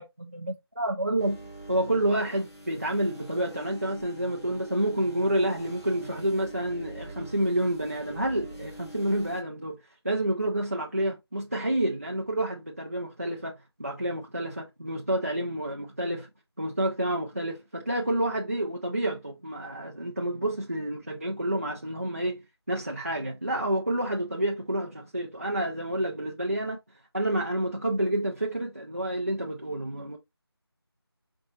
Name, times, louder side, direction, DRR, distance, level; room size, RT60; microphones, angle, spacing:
voice 1, 0.0-9.8 10.0-16.3 16.6-26.8 27.1-30.2, right 1 dB, 35° right, 0.5 m, -29 dB
sound 1, 1.2-9.4, right 1 dB, 80° left, 1.9 m, -45 dB
4.4 x 3.0 x 2.6 m
figure-of-eight pair, 180°, 14 cm